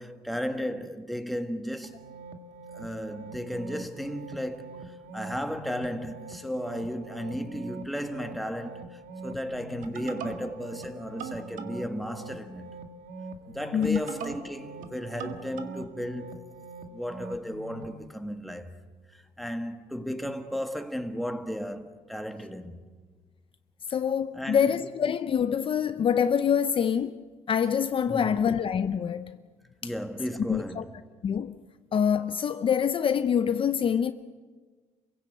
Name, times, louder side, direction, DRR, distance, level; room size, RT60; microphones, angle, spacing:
voice 1, 0.0-2.0 2.7-12.7 13.5-16.4 16.9-18.8 19.1-22.8 24.3-24.8 28.1-28.5 29.8-31.0, equal, ahead, 1.7 m, -35 dB
sound 1, 1.8-17.9, right 4 dB, 85° right, 1.8 m, -42 dB
voice 2, 23.9-27.1 27.5-29.4 29.8-29.9 30.5-30.8 31.2-31.5 31.9-34.1, left 8 dB, 45° left, 0.7 m, -25 dB
28.5 x 16.5 x 8.0 m
cardioid pair, 110°, 13 cm